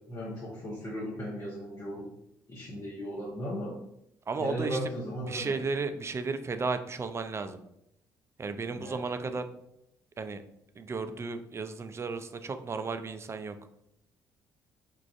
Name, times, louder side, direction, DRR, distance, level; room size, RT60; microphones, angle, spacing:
voice 1, 0.1-2.0 2.5-3.8 4.4-5.6 8.7-9.3, equal, 40° left, -5 dB, 1.0 m, -36 dB
voice 2, 4.3-4.8 5.3-7.6 8.4-9.5 10.2-10.4 10.8-13.6, right 4 dB, 30° right, 9 dB, 0.4 m, -34 dB
4.6 x 2.4 x 2.4 m, 0.79 s
hypercardioid pair, 55°, 9 cm